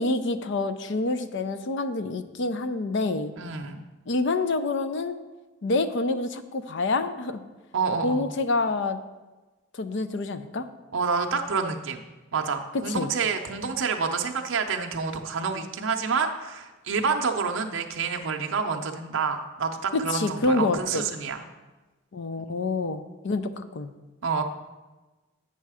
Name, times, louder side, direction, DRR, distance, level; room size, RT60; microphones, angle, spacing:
voice 1, 0.0-3.3 4.1-5.2 5.6-7.4 8.0-9.0 9.7-10.7 12.9-13.1 19.9-21.1 22.1-23.9, left 3 dB, 60° left, 11 dB, 0.5 m, -27 dB
voice 2, 3.4-3.8 7.7-8.3 10.9-12.0 12.3-21.4 22.4-22.5 24.2-24.4, right 5 dB, 65° right, 3 dB, 0.6 m, -28 dB
8.2 x 5.6 x 4.8 m, 1.2 s
head